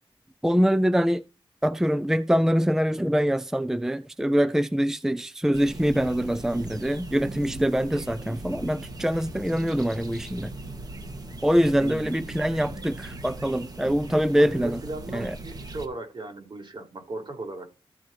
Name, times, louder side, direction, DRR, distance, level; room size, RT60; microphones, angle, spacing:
voice 1, 0.4-1.2 1.6-10.5 11.4-14.8 15.1-15.4, equal, 5° right, 0.5 m, -24 dB
sound 1, 5.5-15.9, right 2 dB, 40° right, 1.8 m, -39 dB
voice 2, 11.8-12.5 14.4-17.7, right 2 dB, 55° right, 4.0 m, -37 dB
14.0 x 4.9 x 4.5 m
wide cardioid pair, 90°, 9 cm